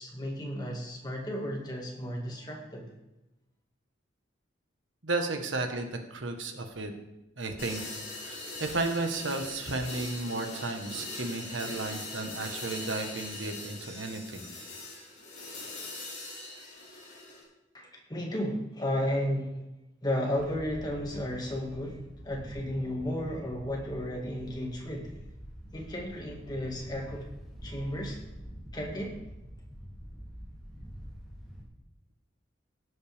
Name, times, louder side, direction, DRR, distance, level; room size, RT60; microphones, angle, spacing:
voice 1, 0.0-2.9 17.7-19.6 20.0-22.0 22.2-25.1 25.7-27.3 27.6-28.2 28.7-29.2, equal, 20° left, -1 dB, 2.1 m, -33 dB
voice 2, 5.0-6.9 7.4-7.8 8.2-14.5, right 3 dB, 85° right, 5 dB, 1.4 m, -33 dB
sound 1, 7.6-17.4, left 2 dB, 45° left, 4.9 m, -41 dB
Wind, 20.3-31.6, equal, ahead, 3.1 m, -46 dB
16.5 x 7.9 x 3.6 m, 0.93 s
head